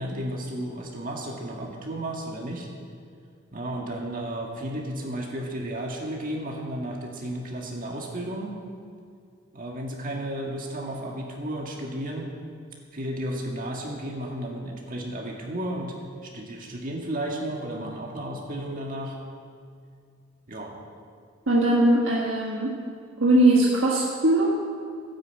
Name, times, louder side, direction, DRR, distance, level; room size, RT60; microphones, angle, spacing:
voice 1, 0.0-2.7 3.5-8.5 9.5-12.3 12.9-15.9 16.2-19.2 20.5-20.7, right 1 dB, 40° right, 0 dB, 1.8 m, -33 dB
voice 2, 21.5-22.8 23.2-24.5, right 1 dB, 65° right, -3 dB, 1.6 m, -20 dB
12.5 x 10.0 x 8.0 m, 2.2 s
head